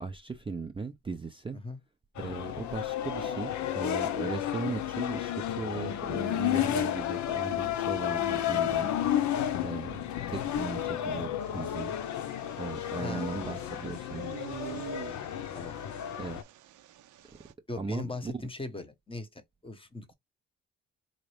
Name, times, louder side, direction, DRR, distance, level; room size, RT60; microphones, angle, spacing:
voice 1, 0.0-1.6 2.2-8.9 9.6-11.9 12.6-14.3 16.2-16.4 17.8-18.5, right 4 dB, 20° right, 0.5 m, -38 dB
sound 1, 2.2-16.4, left 11 dB, 70° left, 0.7 m, -32 dB
sound 2, 11.4-17.5, right 13 dB, 75° right, 0.6 m, -48 dB
voice 2, 13.0-13.6 15.5-15.8 17.7-20.1, left 2 dB, 20° left, 0.9 m, -40 dB
4.0 x 2.5 x 3.2 m
cardioid pair, 90°, 30 cm